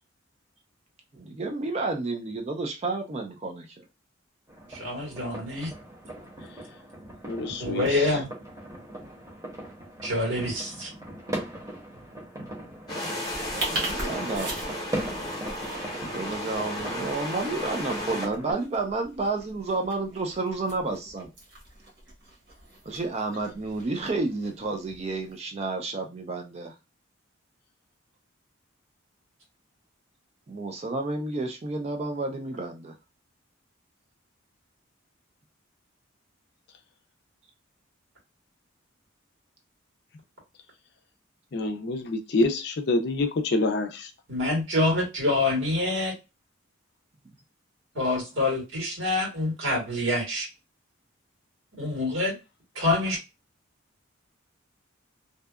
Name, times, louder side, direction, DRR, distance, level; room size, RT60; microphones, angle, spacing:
voice 1, 1.1-3.9 13.7-14.5 16.1-21.3 22.9-26.7 30.5-32.9, right 3 dB, 30° right, 0.3 m, -31 dB
sound 1, 4.5-18.5, right 1 dB, 15° right, 0.8 m, -39 dB
voice 2, 4.7-5.7 7.6-8.3 10.0-10.9 44.3-46.1 47.9-50.5 51.8-52.3 52.7-53.2, left 2 dB, 80° right, 1.5 m, -26 dB
voice 3, 7.3-8.2 16.4-16.5 41.5-44.1, left 2 dB, 55° left, 0.4 m, -27 dB
sound 2, 12.9-18.3, left 1 dB, 20° left, 0.8 m, -34 dB
sound 3, 13.3-25.4, right 2 dB, 60° right, 1.1 m, -41 dB
2.6 x 2.3 x 2.3 m
head